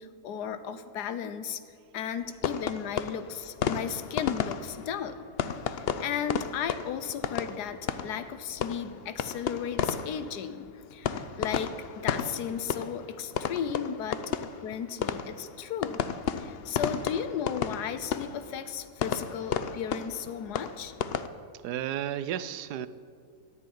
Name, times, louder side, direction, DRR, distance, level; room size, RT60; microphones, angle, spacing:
voice 1, 0.0-1.6 1.9-5.2 5.7-16.0 16.4-20.9, left 8 dB, 85° left, 11 dB, 1.4 m, -35 dB
sound 1, 2.4-21.3, left 7 dB, 65° left, 0.6 m, -34 dB
voice 2, 21.6-22.9, right 11 dB, 85° right, 14 dB, 1.2 m, -32 dB
14.0 x 7.6 x 10.0 m, 2.2 s
omnidirectional pair, 1.7 m